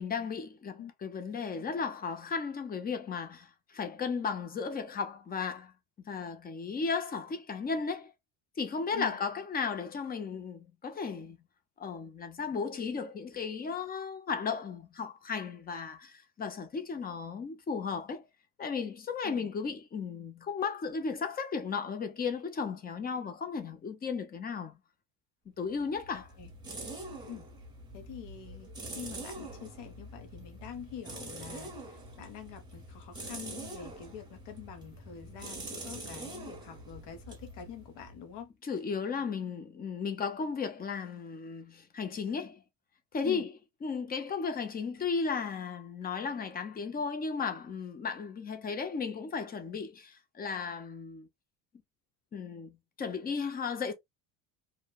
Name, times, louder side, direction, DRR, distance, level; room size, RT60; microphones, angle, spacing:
voice 1, 0.0-5.7 6.1-8.1 8.6-11.4 11.8-18.3 18.6-24.8 25.6-26.3 38.6-42.6 43.1-43.5 43.8-51.3 52.3-53.9, left 5 dB, 20° left, 0.4 m, -35 dB
sound 1, 25.7-38.4, right 2 dB, 10° right, 0.8 m, -45 dB
voice 2, 26.1-26.5 27.3-27.5 27.9-38.5 43.2-43.5, left 8 dB, 65° left, 0.9 m, -46 dB
2.9 x 2.1 x 2.2 m
cardioid pair, 135°, 46 cm